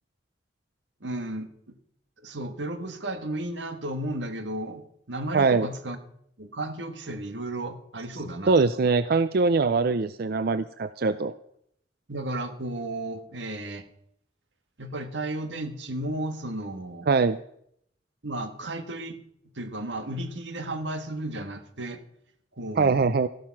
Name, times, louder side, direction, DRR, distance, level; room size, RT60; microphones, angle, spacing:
voice 1, 1.0-1.5 2.2-6.0 6.4-8.6 12.1-13.8 14.8-17.1 18.2-19.2 19.5-22.0 22.6-23.1, right 1 dB, 90° right, 8 dB, 1.7 m, -34 dB
voice 2, 5.3-5.7 8.5-11.3 17.1-17.4 22.8-23.3, right 4 dB, 60° right, 13 dB, 0.5 m, -22 dB
14.5 x 12.0 x 5.9 m, 0.71 s
head